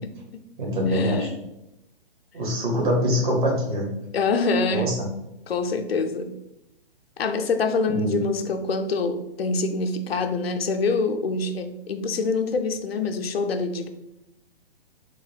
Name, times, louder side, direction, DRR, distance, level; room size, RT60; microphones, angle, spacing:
voice 1, 0.0-0.4 0.9-1.3 4.1-4.9 5.5-6.3 7.2-13.9, left 4 dB, 90° left, 6 dB, 0.5 m, -25 dB
voice 2, 0.6-1.3 2.3-3.9 4.7-4.9 7.9-8.2, equal, 55° right, -1 dB, 1.3 m, -24 dB
3.5 x 2.1 x 3.3 m, 0.86 s
hypercardioid pair, 135°, 29 cm